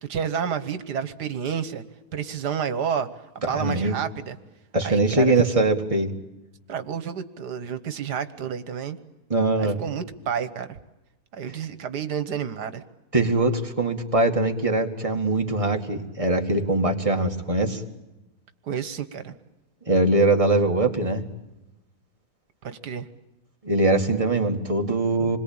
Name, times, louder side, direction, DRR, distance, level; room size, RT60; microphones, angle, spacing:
voice 1, 0.0-1.8 2.1-3.1 3.4-4.4 4.8-5.3 6.7-9.0 9.6-10.8 11.3-12.8 18.6-19.3 22.6-23.1, right 7 dB, 80° right, 11 dB, 1.8 m, -30 dB
voice 2, 3.5-4.0 4.7-6.1 9.3-9.8 13.1-17.8 19.9-21.2 23.6-25.4, right 2 dB, 20° right, 3 dB, 2.2 m, -22 dB
27.5 x 22.0 x 8.8 m, 1.0 s
omnidirectional pair, 1.7 m